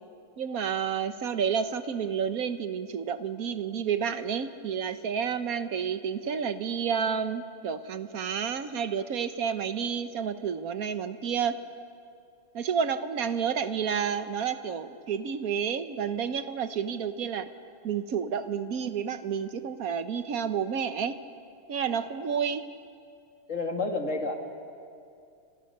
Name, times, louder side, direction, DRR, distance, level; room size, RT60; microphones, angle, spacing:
voice 1, 0.4-11.6 12.5-17.5 17.8-21.2 21.7-22.6, right 7 dB, 50° right, 10 dB, 1.2 m, -30 dB
voice 2, 21.9-22.3 23.5-24.4, left 3 dB, 35° left, 4 dB, 2.3 m, -31 dB
28.5 x 25.5 x 6.7 m, 2.5 s
omnidirectional pair, 2.4 m